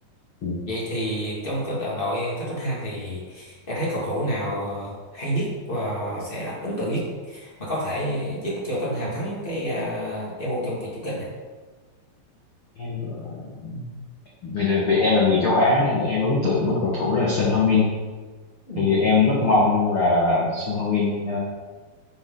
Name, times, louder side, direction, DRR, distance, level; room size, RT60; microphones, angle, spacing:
voice 1, 0.6-11.3 18.7-19.1, equal, 25° left, -5 dB, 1.1 m, -29 dB
voice 2, 12.8-13.9 14.4-17.9 18.8-21.4, left 3 dB, 70° left, -5 dB, 1.2 m, -21 dB
10.5 x 7.2 x 4.0 m, 1.4 s
omnidirectional pair, 4.9 m